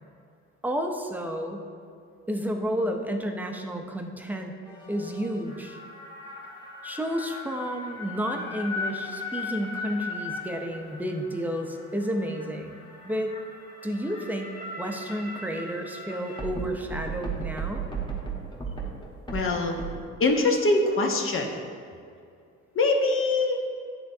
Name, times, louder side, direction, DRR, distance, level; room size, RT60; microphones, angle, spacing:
voice 1, 0.6-1.6 2.3-4.5 4.9-5.8 6.8-12.8 13.0-13.3 13.8-14.5 14.8-17.9, equal, 5° right, 3 dB, 0.6 m, -31 dB
sound 1, 4.7-19.9, right 1 dB, 15° left, 1.3 m, -37 dB
voice 2, 19.3-19.8 20.2-21.5 22.7-23.6, left 2 dB, 45° left, 2 dB, 0.8 m, -23 dB
10.0 x 3.8 x 2.7 m, 2.4 s
cardioid pair, 90°, 30 cm